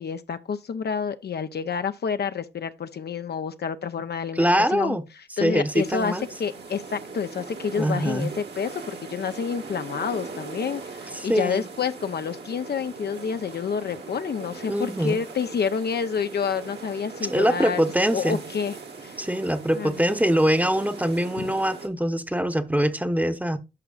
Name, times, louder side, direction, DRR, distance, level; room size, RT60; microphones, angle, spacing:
voice 1, 0.0-6.1 6.4-17.8 18.1-18.8 19.0-19.2 19.7-20.0 21.4-21.5, left 6 dB, 65° left, 0.6 m, -29 dB
voice 2, 4.3-5.0 5.4-6.3 7.8-8.4 11.1-11.6 14.7-15.2 17.2-18.4 19.2-23.6, equal, 10° right, 0.9 m, -23 dB
sound 1, 5.7-21.9, right 4 dB, 70° right, 1.7 m, -40 dB
10.5 x 5.9 x 2.4 m
supercardioid pair, 45°, 18 cm